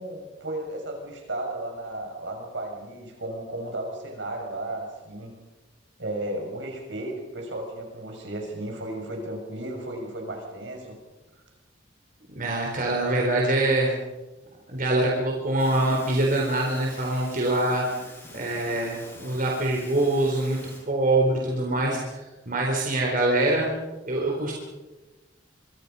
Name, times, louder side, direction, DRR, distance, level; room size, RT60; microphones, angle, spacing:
voice 1, 0.0-5.3 6.0-10.9, right 1 dB, 70° right, 2 dB, 6.5 m, -34 dB
voice 2, 12.3-13.9 14.7-17.8 18.3-20.6 20.9-22.2 22.5-23.7 24.0-24.5, right 2 dB, 45° right, -1 dB, 4.0 m, -24 dB
sound 1, 15.6-20.8, left 1 dB, 10° left, 8.0 m, -46 dB
25.5 x 24.5 x 5.6 m, 1.2 s
head